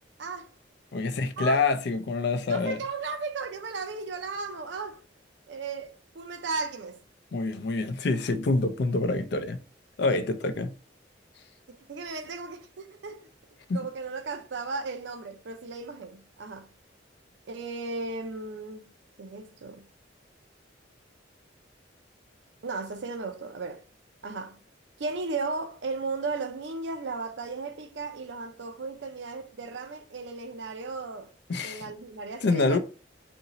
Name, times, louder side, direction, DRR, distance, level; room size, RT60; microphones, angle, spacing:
voice 1, 0.9-2.8 7.3-9.6 10.0-10.7 13.7-13.8 31.5-31.8 32.4-32.8, left 3 dB, 60° left, 0.4 m, -26 dB
voice 2, 2.5-5.0 5.5-7.0 11.8-13.3 13.7-16.7 17.5-18.8 19.2-19.8 22.6-23.9 24.2-24.6 25.0-31.3 31.6-32.8, right 4 dB, 70° right, 0.5 m, -35 dB
2.8 x 2.6 x 3.9 m
head